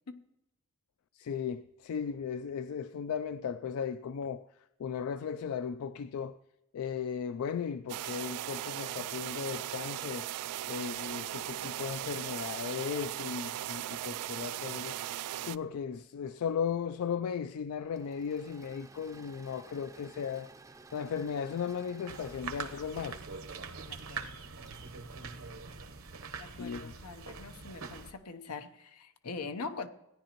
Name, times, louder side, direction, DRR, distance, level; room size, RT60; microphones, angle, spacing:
voice 1, 1.1-4.5 4.8-6.4 6.7-10.3 10.7-15.0 15.4-20.5 20.9-23.2 26.6-26.9, left 7 dB, 70° left, 0.3 m, -36 dB
sound 1, 7.9-15.6, right 13 dB, 90° right, 0.3 m, -38 dB
Engine / Mechanisms, 17.8-26.2, right 3 dB, 15° right, 0.5 m, -56 dB
sound 2, 22.1-28.1, right 4 dB, 70° right, 0.9 m, -43 dB
voice 2, 23.9-24.4 26.4-29.9, left 4 dB, 90° left, 0.8 m, -43 dB
16.5 x 10.0 x 2.9 m
head